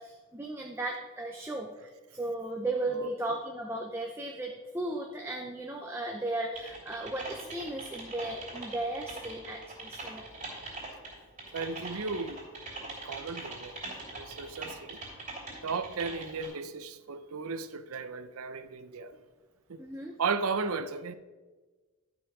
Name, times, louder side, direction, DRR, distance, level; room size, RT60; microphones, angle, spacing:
voice 1, 0.0-10.3 19.8-20.1, right 2 dB, 10° right, 0.5 m, -36 dB
Typing, 6.5-16.5, right 2 dB, 35° right, 2.8 m, -42 dB
voice 2, 11.5-12.4 12.9-13.7 14.1-15.0 15.6-19.2 19.7-19.8 20.2-21.1, right 4 dB, 85° right, 0.6 m, -35 dB
11.0 x 5.5 x 4.8 m
head